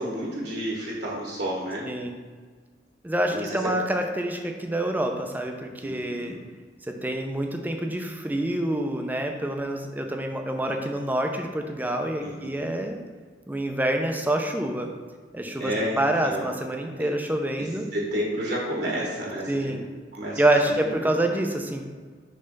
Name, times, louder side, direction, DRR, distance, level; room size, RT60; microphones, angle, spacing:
voice 1, 0.0-1.9 3.3-3.8 5.8-6.4 12.2-12.7 15.6-16.5 17.0-17.1 17.6-19.8 20.1-21.1, equal, 65° right, -4 dB, 1.5 m, -31 dB
voice 2, 1.8-2.2 3.0-6.4 6.9-13.0 13.5-14.9 15.3-17.9 19.5-19.8 20.4-21.9, right 1 dB, 10° right, 4 dB, 0.6 m, -27 dB
6.7 x 3.3 x 5.3 m, 1.5 s
head